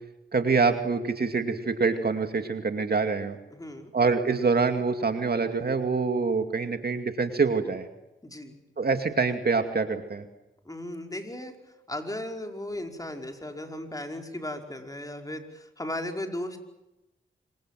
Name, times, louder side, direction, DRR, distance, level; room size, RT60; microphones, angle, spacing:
voice 1, 0.3-3.4 3.9-7.9 8.8-10.2, right 4 dB, 50° right, 6 dB, 2.5 m, -25 dB
voice 2, 3.5-3.9 8.2-8.6 10.7-11.6 11.9-16.6, left 1 dB, 15° left, 3 dB, 5.3 m, -36 dB
26.5 x 24.5 x 7.7 m, 0.94 s
cardioid pair, 60°, 20 cm